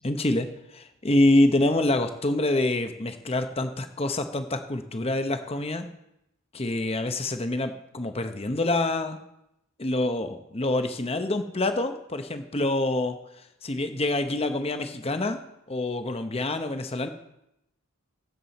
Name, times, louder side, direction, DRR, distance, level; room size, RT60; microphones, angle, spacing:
voice 1, 0.0-5.9 6.5-9.2 9.8-15.4 15.7-17.1, left 2 dB, 25° left, 8 dB, 0.8 m, -26 dB
15.5 x 7.6 x 4.2 m, 0.83 s
head